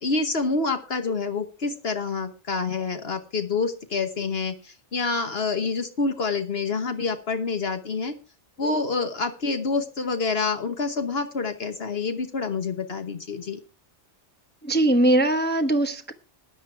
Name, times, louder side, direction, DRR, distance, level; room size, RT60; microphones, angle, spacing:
voice 1, 0.0-8.1 8.6-13.6, left 4 dB, 60° left, 1.4 m, -27 dB
voice 2, 14.6-16.1, right 1 dB, 10° left, 0.9 m, -21 dB
14.0 x 9.8 x 4.6 m
omnidirectional pair, 1.2 m